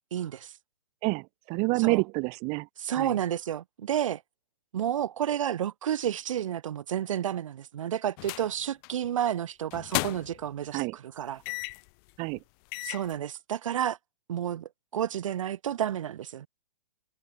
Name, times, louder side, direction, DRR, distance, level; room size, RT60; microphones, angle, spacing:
voice 1, 0.1-0.5 1.8-2.0 2.8-4.2 4.7-11.4 12.8-14.0 14.3-16.5, right 10 dB, 60° right, 2.3 m, -31 dB
voice 2, 1.0-2.7 2.9-3.1 10.7-10.9 12.2-12.4, right 31 dB, 35° right, 2.9 m, -28 dB
sound 1, 8.2-8.5 8.8-9.1 9.7-10.5 11.4-11.9 12.4-12.5 12.7-13.1, left 32 dB, 40° left, 3.1 m, -34 dB
figure-of-eight pair, 120°, 18 cm